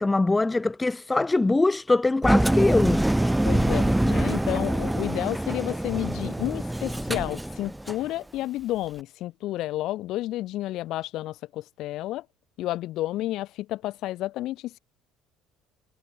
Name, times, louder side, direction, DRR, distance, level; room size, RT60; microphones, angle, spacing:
voice 1, 0.0-3.1, left 2 dB, 15° left, 0.4 m, -23 dB
Engine, 2.2-8.1, right 1 dB, 5° right, 0.8 m, -24 dB
voice 2, 3.4-12.3 12.6-14.8, left 15 dB, 65° left, 5.7 m, -31 dB
hypercardioid pair, 60°, 0 cm